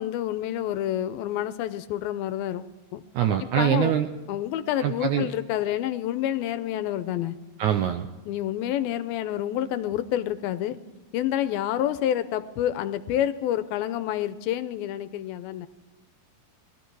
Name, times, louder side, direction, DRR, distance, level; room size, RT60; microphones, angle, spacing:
voice 1, 0.0-3.0 3.6-3.9 4.3-7.4 8.3-10.8 11.1-15.7, left 11 dB, 85° left, 12 dB, 2.6 m, -28 dB
voice 2, 3.1-4.1 4.8-5.3 7.6-8.1, right 10 dB, 80° right, 7 dB, 1.8 m, -24 dB
20.0 x 13.0 x 4.7 m, 1.1 s
omnidirectional pair, 4.2 m